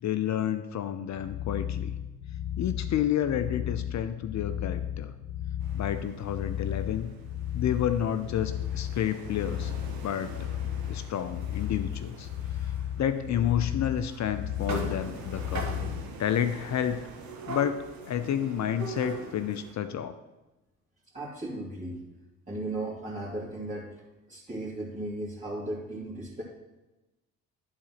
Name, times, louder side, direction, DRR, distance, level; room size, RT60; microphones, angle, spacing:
voice 1, 0.0-1.9 2.6-5.1 5.7-7.1 7.5-9.7 10.0-10.6 10.9-12.3 13.0-15.7 16.2-17.1 17.5-20.1, left 10 dB, 45° left, 11 dB, 0.7 m, -30 dB
sound 1, 1.1-16.1, left 11 dB, 60° left, 1.1 m, -34 dB
sound 2, 5.6-19.7, right 5 dB, 60° right, 1.5 m, -49 dB
sound 3, 11.4-12.9 13.6-13.7 14.1-14.2 14.7-16.2 17.2-19.5, right 3 dB, 45° right, 1.8 m, -40 dB
voice 2, 21.1-22.0 22.5-23.9 24.3-26.4, right 1 dB, 20° right, -9 dB, 2.8 m, -36 dB
11.5 x 4.0 x 6.0 m, 1.0 s
hypercardioid pair, 45°, 40 cm